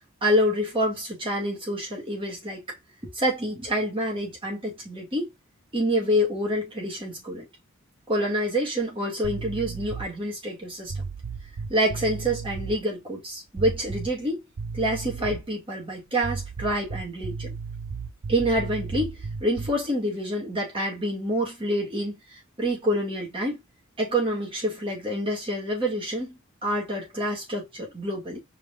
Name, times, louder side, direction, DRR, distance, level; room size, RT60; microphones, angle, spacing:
voice 1, 0.2-2.6 3.1-5.3 5.7-7.5 8.1-11.0 11.7-14.4 14.7-17.5 18.3-23.6 24.0-28.4, equal, 25° right, 2.3 m, -27 dB
sound 1, 9.2-10.2 10.9-12.8 13.6-14.3 14.6-15.5 16.2-19.9, right 4 dB, 85° right, 0.6 m, -34 dB
4.7 x 3.5 x 2.5 m
head